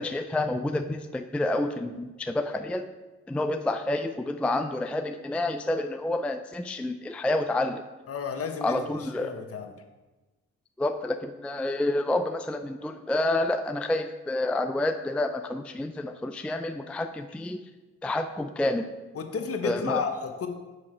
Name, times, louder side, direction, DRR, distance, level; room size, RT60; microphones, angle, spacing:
voice 1, 0.0-2.9 3.3-7.8 8.6-9.4 10.8-17.6 18.0-18.9 19.6-20.1, left 2 dB, 5° left, 7 dB, 0.4 m, -29 dB
voice 2, 8.1-8.8 9.2-9.7 19.1-20.5, left 5 dB, 50° left, 5 dB, 1.0 m, -32 dB
6.3 x 5.9 x 4.4 m, 1.2 s
supercardioid pair, 65°, 31 cm